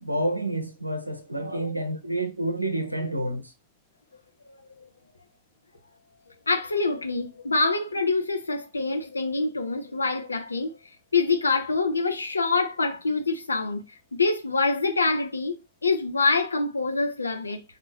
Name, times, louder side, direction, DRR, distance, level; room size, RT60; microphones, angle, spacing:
voice 1, 0.0-3.4, right 1 dB, 90° right, 0.5 m, -29 dB
voice 2, 6.5-10.8 11.1-13.8 14.1-17.6, left 3 dB, 80° left, 0.6 m, -25 dB
3.4 x 2.3 x 3.2 m
figure-of-eight pair, 90°, 0 cm